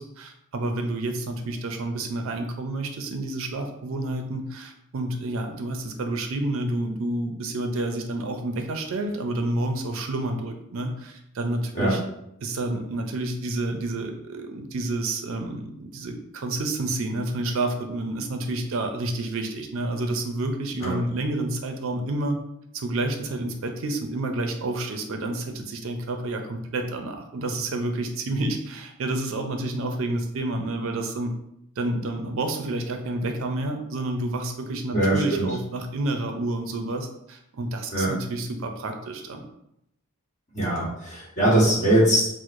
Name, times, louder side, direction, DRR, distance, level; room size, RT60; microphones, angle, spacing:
voice 1, 0.0-12.0 12.4-22.4 22.7-31.3 31.8-39.4, right 2 dB, 65° right, 5 dB, 0.4 m, -29 dB
voice 2, 34.9-35.5 37.9-38.1 40.5-42.3, right 1 dB, 35° left, -6 dB, 1.1 m, -21 dB
4.5 x 2.0 x 2.5 m, 0.79 s
head